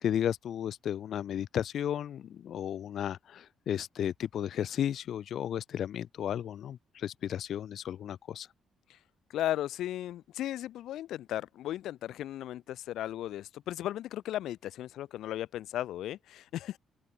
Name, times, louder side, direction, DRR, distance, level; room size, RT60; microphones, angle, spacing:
voice 1, 0.0-8.5, left 10 dB, 50° left, 0.5 m, -34 dB
voice 2, 9.3-16.8, left 13 dB, 75° left, 0.9 m, -36 dB
open air
cardioid pair, 175°, 0 cm